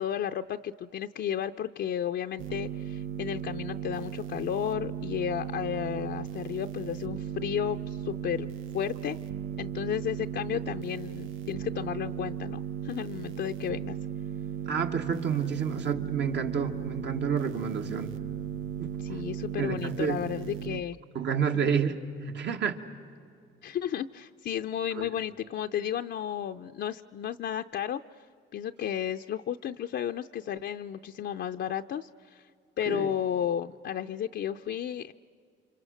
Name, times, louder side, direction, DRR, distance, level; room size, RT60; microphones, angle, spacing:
voice 1, 0.0-8.5 8.7-9.2 9.6-14.0 19.0-21.0 21.5-21.8 23.6-28.0 28.5-32.5 32.8-35.1, left 9 dB, 60° left, 5 dB, 0.5 m, -33 dB
sound 1, 2.4-20.8, right 9 dB, 90° right, 0.6 m, -36 dB
voice 2, 14.7-18.1 18.8-19.2 19.6-20.2 21.1-22.8 24.9-25.1 32.9-33.1, right 7 dB, 60° right, 5 dB, 1.7 m, -30 dB
30.0 x 26.0 x 6.4 m, 2.3 s
cardioid pair, 90°, 20 cm